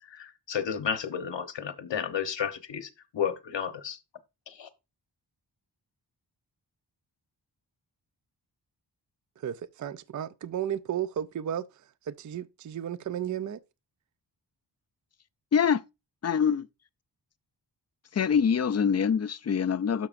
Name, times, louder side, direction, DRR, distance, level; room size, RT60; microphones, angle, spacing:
voice 1, 0.0-4.0 4.5-4.7, left 7 dB, 75° left, 1.1 m, -32 dB
voice 2, 9.4-11.6 12.1-13.6, right 10 dB, 45° right, 0.4 m, -33 dB
voice 3, 15.5-15.8 16.2-16.7 18.1-20.1, left 7 dB, 40° left, 0.4 m, -24 dB
12.5 x 6.0 x 2.5 m
wide cardioid pair, 155°, 43 cm